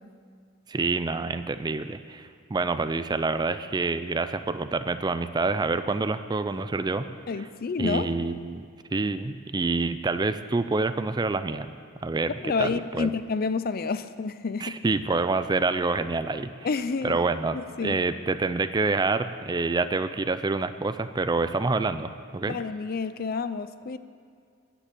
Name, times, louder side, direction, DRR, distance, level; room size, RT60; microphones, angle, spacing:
voice 1, 0.7-7.1 7.8-8.7 8.9-11.7 12.0-12.3 12.6-13.1 14.6-16.5 17.0-22.6, right 3 dB, 20° right, 11 dB, 0.4 m, -27 dB
voice 2, 7.3-8.1 12.4-14.8 16.6-17.2 17.5-18.0 22.5-24.0, left 4 dB, 50° left, 13 dB, 0.5 m, -29 dB
10.0 x 9.9 x 8.4 m, 2.2 s
head